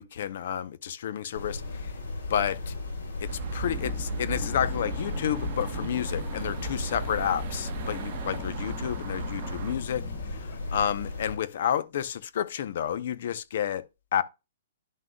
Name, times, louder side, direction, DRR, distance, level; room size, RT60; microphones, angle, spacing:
voice 1, 0.0-1.9 2.3-2.7 3.2-13.8 14.1-14.2, left 9 dB, 55° left, 0.7 m, -30 dB
sound 1, 1.3-11.4, left 3 dB, 75° left, 3.7 m, -36 dB
sound 2, 3.3-9.7, right 9 dB, 35° right, 0.9 m, -39 dB
sound 3, 3.6-10.8, left 5 dB, 25° left, 1.1 m, -40 dB
11.0 x 6.2 x 2.3 m
hypercardioid pair, 165°, 0 cm